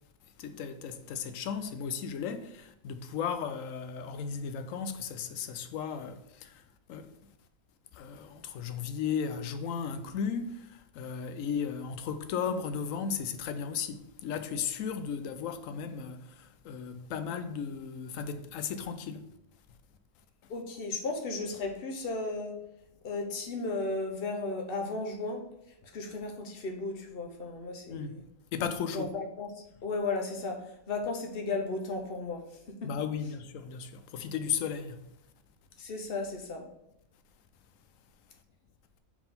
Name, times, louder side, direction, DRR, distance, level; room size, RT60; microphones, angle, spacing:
voice 1, 0.4-6.6 6.9-7.1 7.9-19.2 27.9-28.2 28.5-29.1 32.8-35.0, left 7 dB, 80° left, 1.0 m, -35 dB
voice 2, 20.5-22.5 23.0-25.4 25.8-28.2 28.9-29.5 29.8-30.6 30.9-32.4 32.8-32.9 35.8-36.7, left 3 dB, 50° left, 1.1 m, -34 dB
4.8 x 3.7 x 5.4 m
omnidirectional pair, 1.4 m